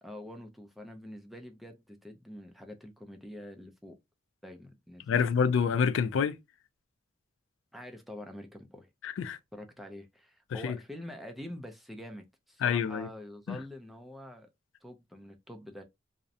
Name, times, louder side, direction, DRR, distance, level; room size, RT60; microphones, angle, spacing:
voice 1, 0.0-4.0 4.4-5.3 7.7-8.9 9.5-14.5 14.8-15.8, left 1 dB, ahead, 0.3 m, -46 dB
voice 2, 5.1-6.4 9.0-9.4 10.5-10.8 12.6-13.1 13.5-13.6, left 6 dB, 90° left, 0.3 m, -27 dB
2.5 x 2.0 x 2.6 m
head